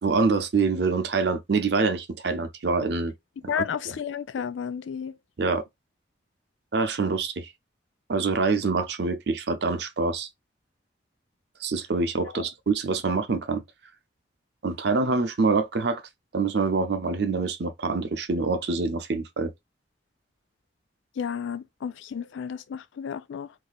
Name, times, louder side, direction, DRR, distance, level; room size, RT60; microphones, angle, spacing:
voice 1, 0.0-3.1 3.4-3.6 5.4-5.6 6.7-7.5 8.1-10.3 11.6-13.6 14.6-16.0 16.3-19.5, right 4 dB, 60° right, 0.5 m, -25 dB
voice 2, 3.5-5.2 12.3-12.5 21.2-23.5, left 7 dB, 80° left, 0.4 m, -32 dB
2.6 x 2.5 x 3.9 m
head